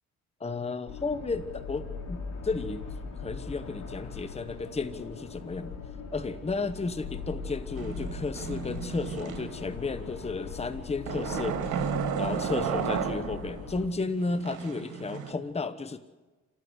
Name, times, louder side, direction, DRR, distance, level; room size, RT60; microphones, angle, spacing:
voice 1, 0.4-2.8 3.2-5.7 6.1-16.0, left 3 dB, 20° left, 11 dB, 1.1 m, -33 dB
sound 1, 0.9-13.9, left 5 dB, 75° left, 5.2 m, -40 dB
sound 2, 7.7-9.8 11.1-13.7 14.2-15.3, right 7 dB, 80° right, 2.4 m, -33 dB
29.0 x 13.0 x 8.1 m, 1.2 s
cardioid pair, 90°, 30 cm